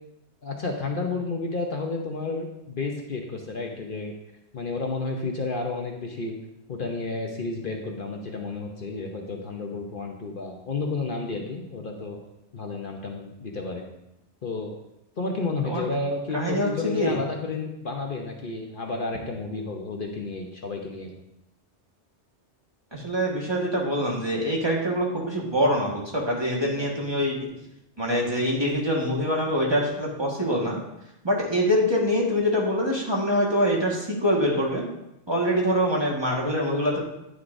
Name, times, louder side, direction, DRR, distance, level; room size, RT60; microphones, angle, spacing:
voice 1, 0.4-4.1 4.5-6.3 6.7-12.2 12.5-13.9 14.4-14.7 15.2-21.1 26.8-26.9, left 3 dB, 50° left, 1 dB, 1.0 m, -31 dB
voice 2, 16.3-17.2 22.9-27.4 28.0-30.8 31.2-34.8 35.3-37.0, equal, 20° right, -3 dB, 1.6 m, -24 dB
9.6 x 9.3 x 2.6 m, 0.87 s
omnidirectional pair, 1.2 m